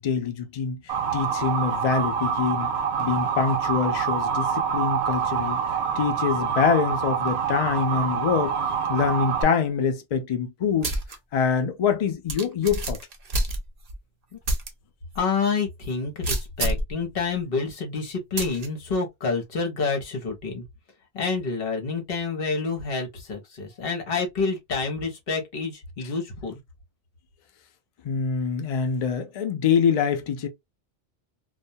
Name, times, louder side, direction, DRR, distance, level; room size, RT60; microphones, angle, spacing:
voice 1, 0.0-2.7 3.0-5.6 6.0-8.6 8.9-10.9 11.3-13.0 28.0-30.5, left 6 dB, 80° left, 0.3 m, -25 dB
Motor vehicle (road) / Siren, 0.9-9.4, right 7 dB, 65° right, 0.8 m, -26 dB
sound 1, 10.8-11.2 11.6-11.7 12.3-14.0 14.4-14.7 15.1-15.2 16.2-16.9 18.4-18.7, right 2 dB, 50° right, 0.5 m, -27 dB
voice 2, 15.1-20.6 21.1-26.6, left 4 dB, 55° left, 0.9 m, -28 dB
2.2 x 2.2 x 2.6 m
omnidirectional pair, 1.2 m